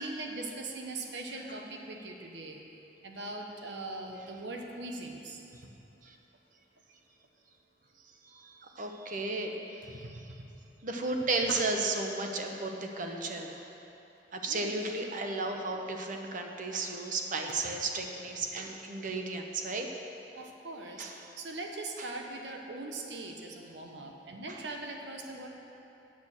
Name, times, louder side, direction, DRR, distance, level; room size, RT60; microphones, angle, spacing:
voice 1, 0.0-2.6 3.0-5.4 10.0-10.1 11.5-11.6 14.5-14.7 20.3-21.1 21.4-25.5, right 2 dB, 90° right, 2 dB, 1.0 m, -40 dB
voice 2, 8.0-10.3 10.8-13.6 14.3-20.0 21.0-21.3 22.0-22.1 24.5-24.7, right 3 dB, 50° right, 3 dB, 0.9 m, -34 dB
8.7 x 6.3 x 7.2 m, 3.0 s
head